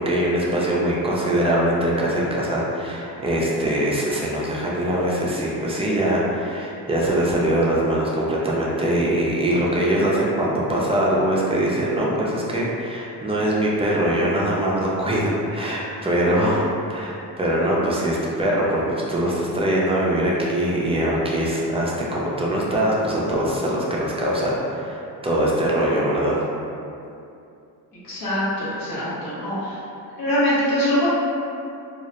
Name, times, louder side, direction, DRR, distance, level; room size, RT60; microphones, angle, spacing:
voice 1, 0.0-26.3, right 1 dB, 15° right, -5 dB, 0.3 m, -22 dB
voice 2, 27.9-29.8 30.2-31.1, equal, 65° left, -9 dB, 1.0 m, -23 dB
2.4 x 2.0 x 2.8 m, 2.6 s
cardioid pair, 115°, 37 cm